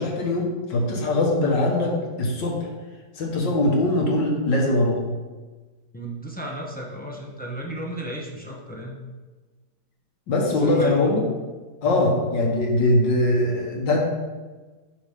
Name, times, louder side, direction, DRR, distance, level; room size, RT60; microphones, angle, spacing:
voice 1, 0.0-2.7 3.2-5.0 10.3-11.2 11.8-14.0, left 1 dB, 85° left, -1 dB, 2.1 m, -22 dB
voice 2, 5.9-9.0 10.4-11.2 11.8-12.1, right 1 dB, 10° left, -2 dB, 0.5 m, -34 dB
8.1 x 5.5 x 3.6 m, 1.3 s
omnidirectional pair, 1.9 m